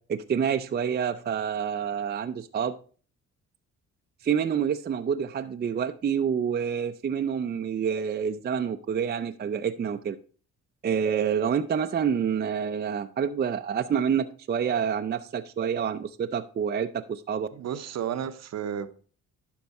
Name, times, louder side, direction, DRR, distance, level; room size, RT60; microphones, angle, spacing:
voice 1, 0.1-2.7 4.2-10.2 10.8-17.5, right 7 dB, 35° right, 8 dB, 0.5 m, -27 dB
voice 2, 17.5-18.9, right 9 dB, 60° right, 12 dB, 0.8 m, -32 dB
12.0 x 4.6 x 4.2 m, 0.41 s
cardioid pair, 90°, 30 cm